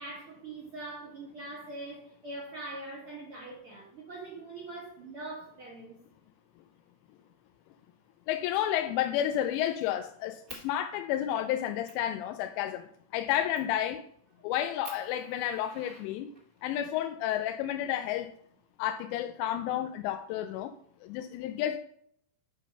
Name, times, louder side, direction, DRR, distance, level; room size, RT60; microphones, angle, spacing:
voice 1, 0.0-6.0, right 2 dB, 75° right, 1.2 m, -42 dB
voice 2, 8.3-12.8 13.1-14.0 14.4-16.3 16.6-18.3 18.8-20.7 21.0-21.8, left 11 dB, 85° left, 2.8 m, -31 dB
Fire, 8.3-8.6 9.0-9.9 10.5-10.7 11.3-11.4 11.8-12.1 13.5-13.8 14.3-14.4 14.8-16.6 17.6-18.6, right 2 dB, 25° right, 1.1 m, -50 dB
7.7 x 6.3 x 5.3 m
omnidirectional pair, 5.1 m